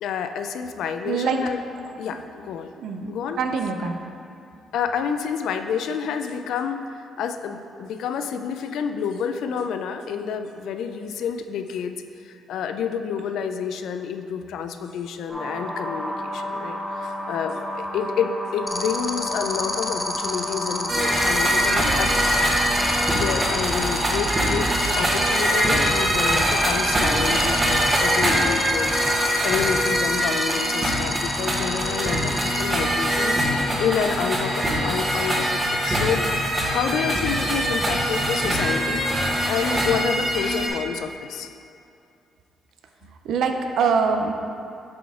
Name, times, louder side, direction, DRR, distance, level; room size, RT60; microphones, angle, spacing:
voice 1, 0.0-1.6 2.0-2.7 3.1-3.4 4.7-6.8 7.2-22.2 22.5-22.7 23.1-33.5 33.8-39.1 39.4-41.5, left 7 dB, 80° left, 7 dB, 0.3 m, -29 dB
voice 2, 1.1-1.4 2.8-4.0 43.2-44.3, right 5 dB, 75° right, 5 dB, 0.4 m, -24 dB
sound 1, 15.3-23.5, equal, 5° right, 1.1 m, -32 dB
sound 2, 18.7-32.6, left 2 dB, 20° left, 0.5 m, -29 dB
sound 3, 20.9-40.7, equal, 25° right, 1.2 m, -23 dB
7.4 x 4.1 x 3.5 m, 2.5 s
cardioid pair, 90°, 0 cm